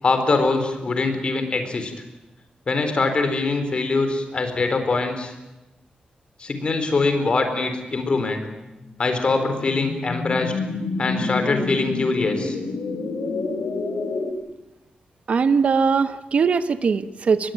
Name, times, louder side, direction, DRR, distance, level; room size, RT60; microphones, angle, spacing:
voice 1, 0.0-1.9 2.7-5.3 6.4-8.4 9.0-10.5 11.0-12.6, left 3 dB, 40° left, 7 dB, 4.2 m, -23 dB
sound 1, 8.8-14.3, left 3 dB, 85° left, 3.5 m, -28 dB
voice 2, 15.3-17.5, right 5 dB, 50° right, 12 dB, 1.2 m, -20 dB
24.5 x 21.0 x 9.1 m, 1.0 s
wide cardioid pair, 175°, 3 cm